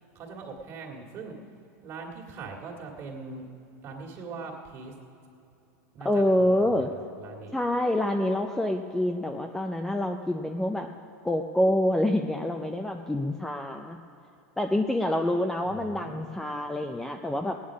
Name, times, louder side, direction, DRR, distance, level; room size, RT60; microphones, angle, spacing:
voice 1, 0.1-1.3 1.8-3.5 3.8-4.9 5.9-7.6 15.6-16.2, right 4 dB, 35° right, -1 dB, 2.2 m, -41 dB
voice 2, 6.0-6.9 7.5-10.9 11.2-14.0 14.6-17.6, left 1 dB, 5° left, 4 dB, 0.4 m, -26 dB
17.0 x 9.5 x 6.2 m, 2.8 s
supercardioid pair, 150°, 8 cm